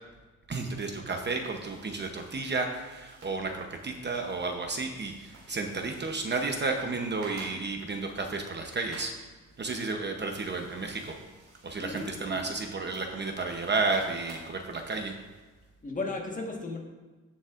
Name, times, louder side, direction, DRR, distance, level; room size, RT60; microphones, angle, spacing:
voice 1, 0.5-9.2 9.6-11.2 11.6-15.2, right 3 dB, 35° right, 3 dB, 0.8 m, -32 dB
sound 1, 0.9-15.7, right 3 dB, 70° right, 3.2 m, -54 dB
voice 2, 11.8-12.5 15.8-16.8, left 2 dB, 25° left, 0 dB, 1.5 m, -35 dB
16.0 x 7.1 x 2.5 m, 1.3 s
wide cardioid pair, 140°, 31 cm